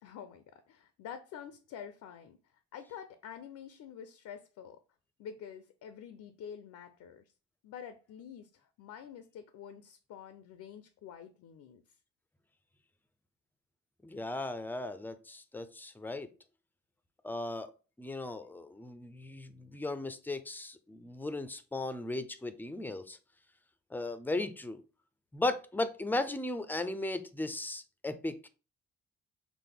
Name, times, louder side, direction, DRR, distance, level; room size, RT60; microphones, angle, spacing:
voice 1, 0.0-4.8 5.2-7.3 7.6-11.8, left 8 dB, 75° left, 0.5 m, -48 dB
voice 2, 14.0-16.3 17.2-17.7 18.0-23.2 23.9-24.8 25.3-28.5, left 2 dB, 5° left, 0.4 m, -36 dB
5.9 x 2.1 x 3.4 m
cardioid pair, 90°, 30 cm